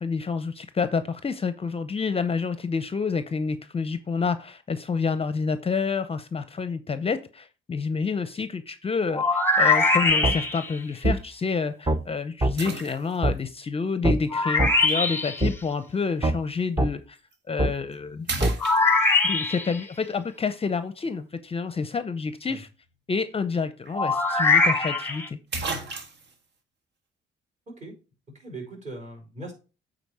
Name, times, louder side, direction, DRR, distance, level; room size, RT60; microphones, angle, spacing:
voice 1, 0.0-17.2 17.5-18.5 19.2-22.7 23.1-25.4, left 5 dB, 30° left, 11 dB, 0.6 m, -28 dB
sound 1, 9.1-10.8 14.3-15.5 18.6-19.8 23.9-25.3, left 3 dB, 10° left, 1.0 m, -22 dB
sound 2, 10.1-10.4 11.1-11.2 12.6-13.4 14.9-15.0 17.2-17.3 17.8-18.0 18.3-19.4 23.5-23.6 23.9-24.0 25.0-25.1 25.5-26.4, right 3 dB, 65° right, 1.7 m, -34 dB
sound 3, 10.2-10.4 11.0-11.2 11.9-12.0 12.4-12.5 13.2-13.4 14.0-14.2 14.6-14.7 15.4-15.5 16.2-16.4 16.8-16.9 17.6-17.7 18.4-18.5, right 1 dB, 20° right, 0.8 m, -22 dB
voice 2, 28.3-29.5, right 2 dB, 35° right, 1 dB, 4.6 m, -39 dB
8.4 x 4.0 x 4.8 m, 0.33 s
cardioid pair, 90°, 20 cm